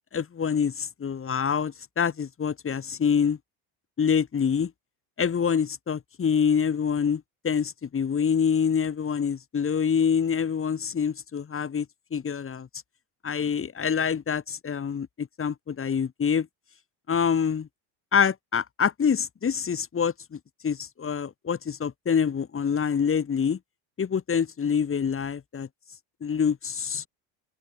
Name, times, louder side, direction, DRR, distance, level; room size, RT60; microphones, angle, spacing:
voice 1, 0.1-3.4 4.0-4.7 5.2-11.9 12.1-12.7 13.2-16.5 17.1-17.7 18.1-20.4 20.6-23.6 24.0-25.7 26.2-27.1, left 7 dB, 25° left, 1.8 m, -26 dB
open air
supercardioid pair, 90°, 47 cm